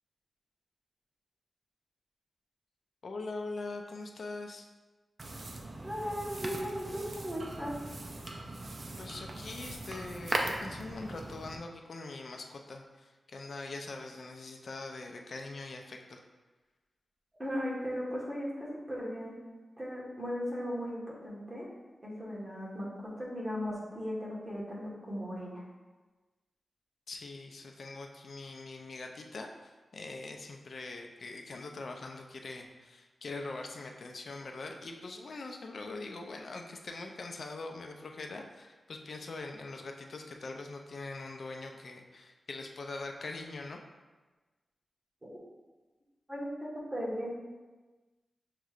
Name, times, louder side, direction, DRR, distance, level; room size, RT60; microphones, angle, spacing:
voice 1, 3.0-4.7 9.0-16.2 27.1-43.8, left 3 dB, 65° left, 3 dB, 0.4 m, -43 dB
sound 1, 5.2-11.6, right 2 dB, 50° right, 0.4 m, -39 dB
voice 2, 5.8-7.7 17.4-19.3 19.8-21.7 22.0-25.6 46.3-47.3, equal, 20° right, -6 dB, 1.3 m, -37 dB
6.4 x 3.1 x 2.4 m, 1.3 s
wide cardioid pair, 105°, 0 cm